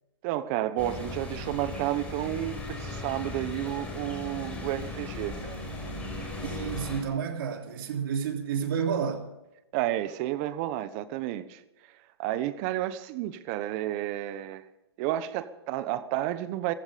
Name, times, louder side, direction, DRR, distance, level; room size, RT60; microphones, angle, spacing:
voice 1, 0.2-5.7 9.7-11.6 12.2-14.6 15.0-16.7, right 14 dB, 35° right, 1.1 m, -31 dB
sound 1, 0.8-7.0, left 2 dB, 10° left, 4.9 m, -37 dB
voice 2, 6.4-9.2, right 7 dB, 55° right, 3.1 m, -30 dB
16.5 x 15.5 x 5.2 m
hypercardioid pair, 145°, 14 cm